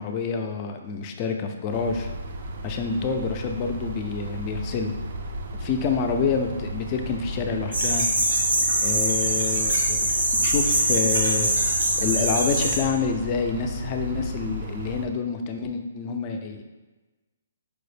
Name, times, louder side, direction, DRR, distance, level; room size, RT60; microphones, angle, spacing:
voice 1, 0.0-2.1 2.6-4.9 5.5-8.1 8.8-11.5 12.0-16.6, left 5 dB, 30° left, 5 dB, 0.3 m, -28 dB
sound 1, 1.7-15.1, right 1 dB, 55° right, 0.4 m, -34 dB
sound 2, 7.7-12.8, right 1 dB, 85° right, 1.1 m, -23 dB
4.8 x 2.0 x 3.2 m, 1.2 s
hypercardioid pair, 155°, 0 cm